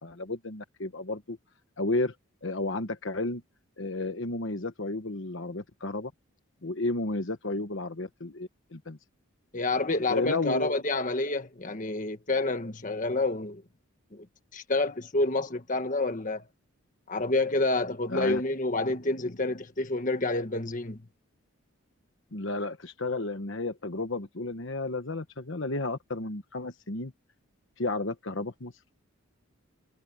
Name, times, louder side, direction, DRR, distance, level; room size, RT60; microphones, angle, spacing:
voice 1, 0.0-1.4 1.8-2.1 2.4-3.4 3.8-6.1 6.6-9.0 10.1-10.8 18.1-18.4 22.3-27.1 27.8-28.9, left 2 dB, 60° left, 1.2 m, -32 dB
voice 2, 9.5-13.6 14.1-14.2 14.5-16.4 17.1-21.0, left 2 dB, 35° left, 1.5 m, -28 dB
head